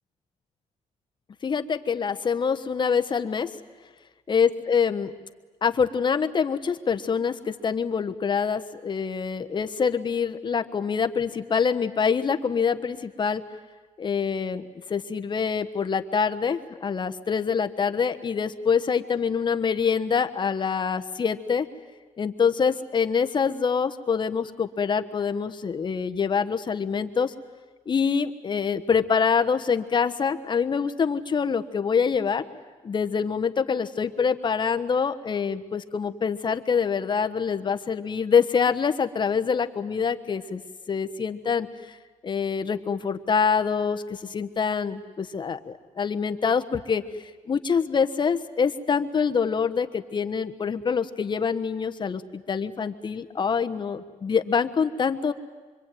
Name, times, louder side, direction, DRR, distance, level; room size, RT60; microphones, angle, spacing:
voice 1, 1.4-3.5 4.3-5.1 5.6-13.4 14.0-21.7 22.2-27.3 27.9-32.4 32.8-40.6 40.9-42.0 42.2-47.0 47.5-55.3, left 6 dB, 40° left, 8 dB, 1.3 m, -25 dB
25.5 x 24.5 x 9.3 m, 1.3 s
cardioid pair, 120°, 12 cm